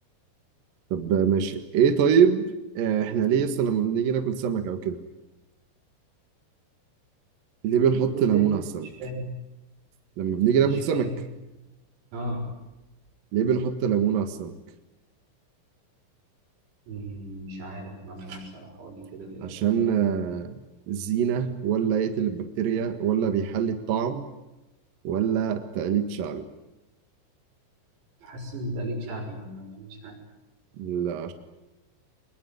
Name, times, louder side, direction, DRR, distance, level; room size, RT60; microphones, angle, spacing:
voice 1, 0.9-5.0 7.6-8.9 10.2-11.1 13.3-14.5 19.4-24.2 25.0-26.5 30.8-31.3, right 8 dB, 60° right, 8 dB, 2.7 m, -24 dB
voice 2, 8.1-8.5 9.0-9.3 10.6-11.1 12.1-12.5 16.9-20.0 28.2-30.2, right 1 dB, 85° right, 1 dB, 9.1 m, -36 dB
24.5 x 21.5 x 9.5 m, 1.0 s
omnidirectional pair, 5.9 m